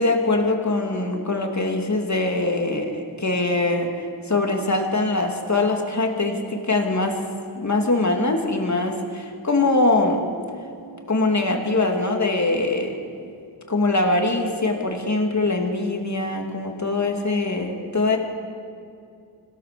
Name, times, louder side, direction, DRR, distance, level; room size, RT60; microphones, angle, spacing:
voice 1, 0.0-3.9 4.3-7.2 7.6-10.2 11.1-12.9 13.7-18.2, left 2 dB, 40° left, 3 dB, 2.7 m, -22 dB
25.0 x 17.0 x 6.9 m, 2.5 s
wide cardioid pair, 100°, 43 cm